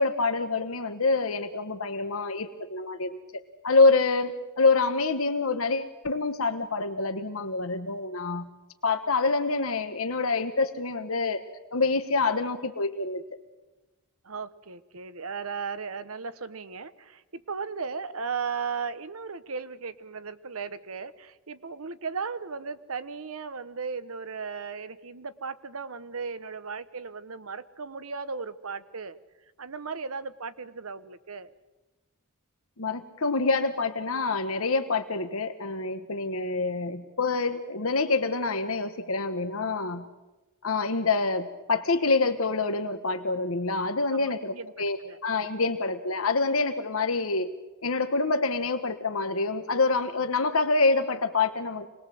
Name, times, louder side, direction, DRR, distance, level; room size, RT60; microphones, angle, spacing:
voice 1, 0.0-8.5 8.8-11.4 11.7-13.2 32.8-40.1 40.6-47.5 47.8-51.9, left 3 dB, 70° left, 9 dB, 1.3 m, -26 dB
voice 2, 14.2-29.2 29.6-31.5 44.1-45.2, right 5 dB, 75° right, 13 dB, 1.1 m, -36 dB
25.5 x 20.5 x 7.8 m, 1.1 s
head